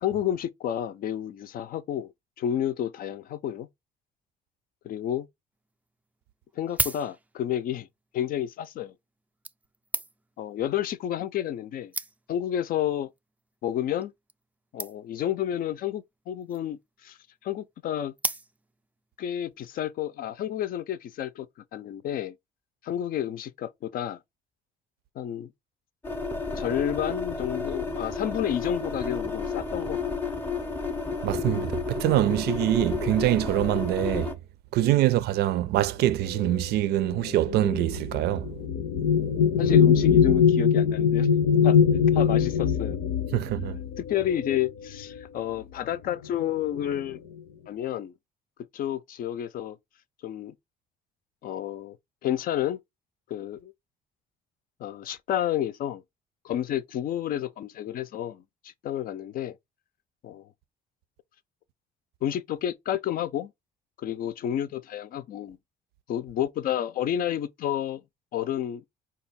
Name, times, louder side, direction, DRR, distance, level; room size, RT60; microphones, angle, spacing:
voice 1, 0.0-2.1 2.4-3.7 4.8-5.3 6.6-7.9 8.1-8.9 10.4-11.9 12.3-13.1 13.6-14.1 14.7-17.2 17.4-18.1 19.2-21.5 21.7-22.3 22.8-24.2 25.2-25.5 26.6-30.3 34.8-34.9 39.6-41.3 41.6-41.8 42.1-43.0 44.0-47.2 47.7-48.1 48.7-49.8 50.2-50.5 51.4-52.0 52.2-52.8 53.3-53.7 54.8-56.0 56.4-59.6 60.2-60.4 62.2-63.5 64.0-65.6 66.1-68.0 68.3-68.8, left 10 dB, 60° left, 0.5 m, -30 dB
sound 1, 5.6-5.7 6.5-7.6 8.5-8.7 9.4-10.4 11.3-11.4 11.6-11.7 11.9-12.5 13.2-13.4 13.7-13.8 14.0-14.1 14.3-14.4 14.8-15.3 16.3-16.8 18.2-18.9 19.4-19.5, right 2 dB, 10° right, 0.3 m, -34 dB
sound 2, 26.0-34.3, left 4 dB, 10° left, 0.7 m, -31 dB
voice 2, 31.2-34.3 34.7-38.5 43.3-43.8, right 14 dB, 75° right, 0.5 m, -24 dB
sound 3, 36.3-45.2 46.1-46.3 46.6-47.2, left 7 dB, 90° left, 0.8 m, -23 dB
5.1 x 2.4 x 4.0 m
cardioid pair, 110°, 17 cm